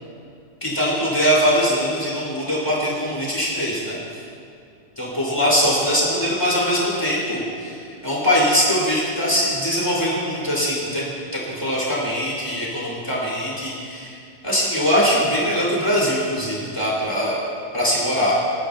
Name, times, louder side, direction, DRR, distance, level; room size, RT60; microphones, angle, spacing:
voice 1, 0.6-3.9 5.0-14.2 14.4-17.3 17.7-18.4, equal, 15° left, -7 dB, 4.7 m, -22 dB
30.0 x 11.5 x 2.9 m, 2.4 s
omnidirectional pair, 1.9 m